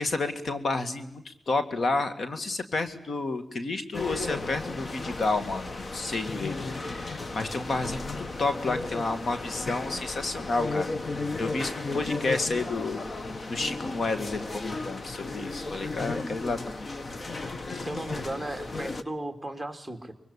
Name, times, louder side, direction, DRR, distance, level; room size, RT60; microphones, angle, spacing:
voice 1, 0.0-6.6 6.8-10.9 11.4-13.0 13.5-16.9, left 3 dB, 60° left, 9 dB, 2.1 m, -30 dB
sound 1, 3.9-19.0, left 3 dB, 40° left, 1.3 m, -34 dB
voice 2, 17.7-20.1, right 1 dB, ahead, 5 dB, 3.0 m, -36 dB
25.0 x 23.5 x 8.4 m, 0.74 s
wide cardioid pair, 115°, 0 cm